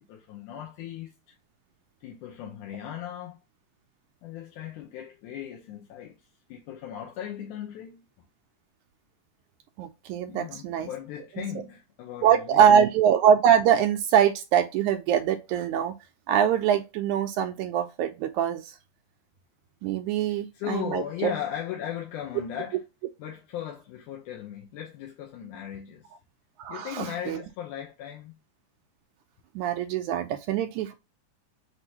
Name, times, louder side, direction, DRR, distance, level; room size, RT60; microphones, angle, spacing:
voice 1, 0.1-1.4 2.0-3.4 4.2-6.2 6.5-8.1 10.3-12.7 20.3-22.8 23.2-26.1 26.7-28.4, left 10 dB, 85° left, 2.3 m, -37 dB
voice 2, 9.8-10.9 12.2-16.0 16.3-18.8 19.8-21.3 26.6-27.4 29.6-30.9, right 8 dB, 80° right, 2.0 m, -23 dB
6.1 x 2.8 x 2.8 m
omnidirectional pair, 3.5 m